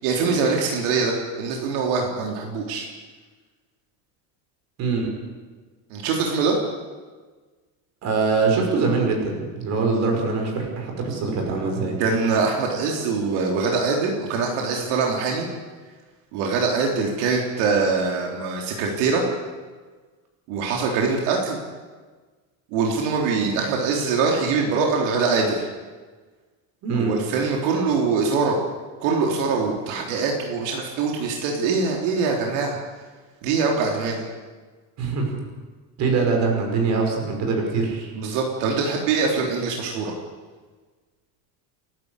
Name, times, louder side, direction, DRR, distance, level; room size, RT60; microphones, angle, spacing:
voice 1, 0.0-2.9 5.9-6.6 12.0-15.5 16.3-19.2 20.5-21.6 22.7-25.7 26.9-28.6 29.0-32.8 33.4-34.3 38.2-40.1, right 4 dB, 80° right, 0 dB, 3.8 m, -23 dB
voice 2, 4.8-5.1 8.0-12.0 26.8-27.1 35.0-35.4 36.0-38.1, right 4 dB, 45° right, 2 dB, 5.9 m, -23 dB
29.5 x 12.0 x 8.3 m, 1.4 s
cardioid pair, 170°, 39 cm